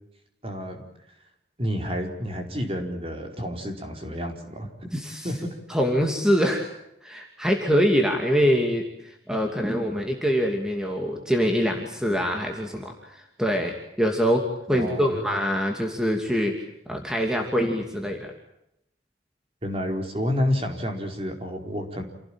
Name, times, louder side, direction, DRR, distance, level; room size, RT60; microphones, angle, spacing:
voice 1, 0.4-0.8 1.6-4.7 5.2-5.6 14.7-15.2 19.6-22.0, equal, 30° right, 3 dB, 4.7 m, -29 dB
voice 2, 4.9-5.3 5.7-6.7 7.0-14.4 14.7-16.5 16.9-18.3, equal, 5° right, 2 dB, 2.7 m, -24 dB
28.5 x 17.5 x 9.0 m, 0.82 s
head